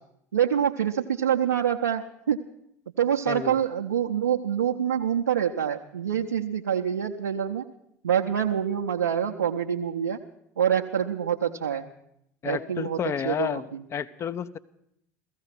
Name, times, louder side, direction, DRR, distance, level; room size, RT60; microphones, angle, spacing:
voice 1, 0.3-2.4 3.0-7.6 8.0-10.2 10.6-11.8 12.4-13.0 13.2-13.8, right 9 dB, 80° right, 1 dB, 0.8 m, -26 dB
voice 2, 3.3-3.6 12.4-14.6, left 8 dB, 35° left, 14 dB, 0.7 m, -31 dB
15.5 x 15.0 x 5.9 m, 0.74 s
figure-of-eight pair, 70°, 8 cm